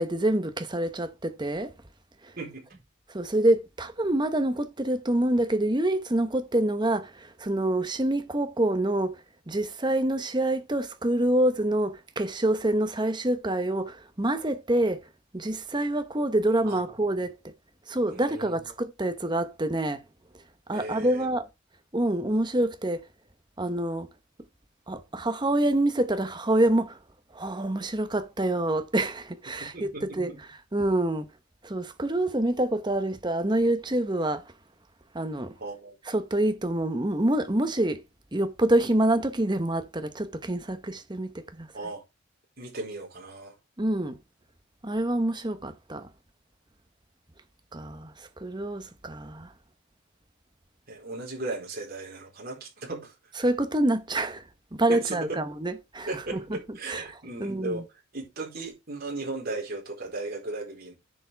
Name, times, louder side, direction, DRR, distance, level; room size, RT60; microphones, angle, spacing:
voice 1, 0.0-1.7 2.2-2.3 3.1-15.1 15.3-17.5 17.9-20.0 20.7-21.5 21.9-23.0 23.6-24.1 24.9-27.0 27.3-31.3 31.6-34.4 35.1-35.5 36.1-38.0 38.3-41.7 43.8-44.2 44.8-46.1 47.7-49.5 53.4-54.4 54.7-56.6 56.9-57.8, right 1 dB, 20° right, 0.9 m, -26 dB
voice 2, 2.4-2.7 16.6-16.8 18.1-18.6 20.7-21.3 29.6-30.2 35.6-36.0 41.7-42.0 42.6-43.5 50.9-53.1 54.9-55.4 56.1-57.8 58.1-60.9, right 2 dB, 45° right, 4.1 m, -36 dB
10.0 x 7.0 x 3.4 m
head